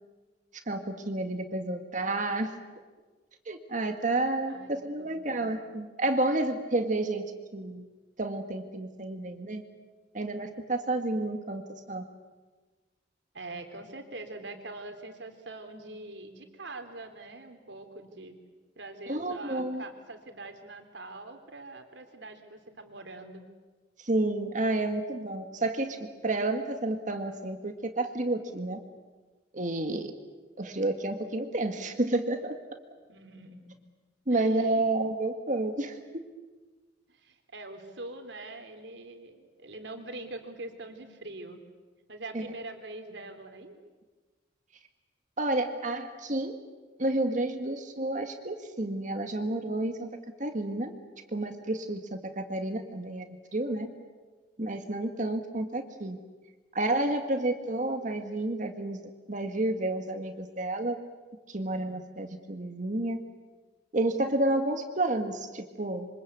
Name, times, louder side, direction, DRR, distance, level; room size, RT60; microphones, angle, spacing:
voice 1, 0.7-2.5 3.5-7.8 8.2-9.6 10.1-11.6 11.9-12.0 19.1-19.8 24.0-28.8 29.5-30.1 30.6-32.6 34.3-36.2 42.3-42.4 45.4-46.6 47.0-50.1 50.4-50.9 51.3-53.3 53.5-53.9 54.6-56.2 56.8-61.0 61.5-63.2 63.9-66.1, right 2 dB, 45° right, 6 dB, 1.8 m, -30 dB
voice 2, 5.0-5.4 13.3-18.4 18.8-23.4 33.1-33.8 34.3-34.8 37.1-41.6 42.1-43.7, right 2 dB, 70° right, 6 dB, 3.4 m, -43 dB
26.5 x 25.0 x 8.4 m, 1.3 s
head